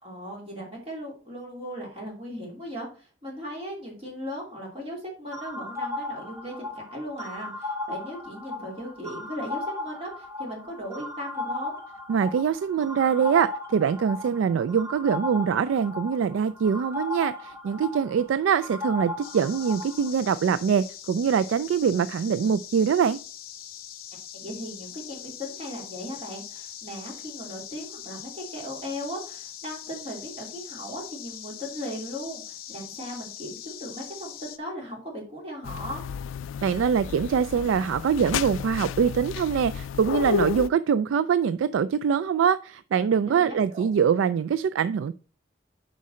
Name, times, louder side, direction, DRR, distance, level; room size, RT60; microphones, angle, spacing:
voice 1, 0.0-11.7 18.0-18.1 24.3-36.0 43.2-43.9, equal, 30° right, 2.9 m, -37 dB
sound 1, 5.3-20.1, left 2 dB, 15° right, 1.1 m, -36 dB
voice 2, 12.1-23.2 36.6-45.1, right 7 dB, 85° right, 0.3 m, -24 dB
sound 2, 19.2-34.6, left 10 dB, 50° left, 0.8 m, -42 dB
sound 3, 35.6-40.7, left 7 dB, 90° left, 0.3 m, -32 dB
7.4 x 5.3 x 4.2 m
head